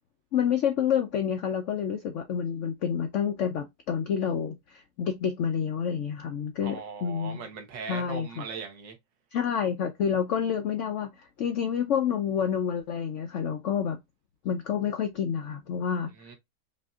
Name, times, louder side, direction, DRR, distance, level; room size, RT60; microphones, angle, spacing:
voice 1, 0.3-7.4 7.9-8.4 9.3-14.0 14.4-16.1, left 8 dB, 80° left, 0.6 m, -28 dB
voice 2, 6.6-9.0 16.1-16.4, right 5 dB, 80° right, 1.7 m, -39 dB
5.5 x 2.5 x 2.3 m
omnidirectional pair, 1.9 m